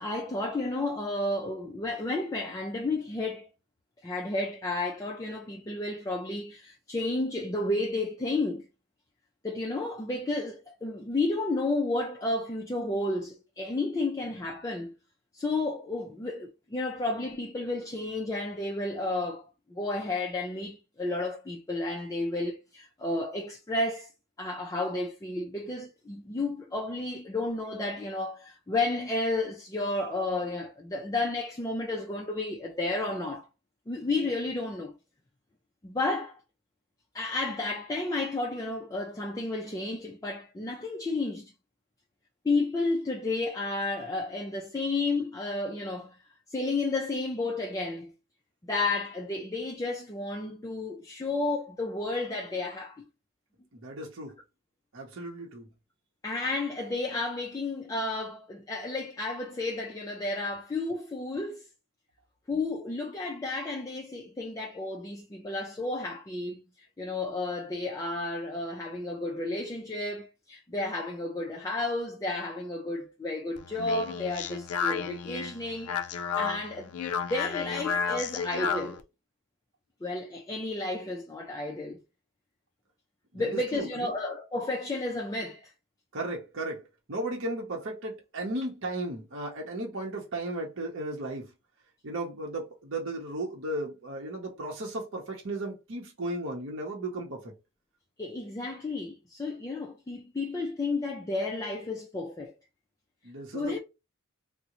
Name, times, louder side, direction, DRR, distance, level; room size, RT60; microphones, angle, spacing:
voice 1, 0.0-3.5 4.0-8.7 9.4-14.9 15.3-24.1 24.4-33.5 33.9-35.0 35.8-36.4 37.1-41.5 42.4-46.2 46.5-48.1 48.6-53.1 56.2-61.6 62.5-76.9 77.3-79.0 80.0-82.0 83.3-85.7 98.2-102.5 103.5-103.8, left 2 dB, 15° left, 0.3 m, -32 dB
voice 2, 53.7-54.4 54.9-55.7 83.3-84.2 86.1-91.5 92.0-97.5 103.2-103.8, right 2 dB, 55° right, 0.8 m, -35 dB
Speech, 73.6-79.0, left 6 dB, 85° left, 0.4 m, -32 dB
3.7 x 2.1 x 2.9 m
head